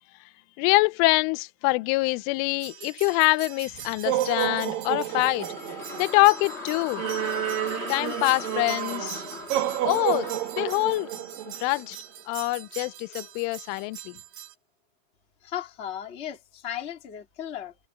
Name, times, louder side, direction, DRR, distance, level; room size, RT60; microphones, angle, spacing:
voice 1, 0.6-5.5 6.0-7.0 7.9-9.2 9.9-10.3 10.6-11.1 11.5-12.0 12.3-14.2, left 24 dB, 80° left, 3.0 m, -24 dB
sound 1, 2.6-14.5, right 13 dB, 70° right, 2.2 m, -32 dB
sound 2, 5.1-12.3, left 3 dB, 35° left, 0.9 m, -39 dB
voice 2, 15.4-17.7, left 10 dB, 65° left, 0.6 m, -36 dB
omnidirectional pair, 6.0 m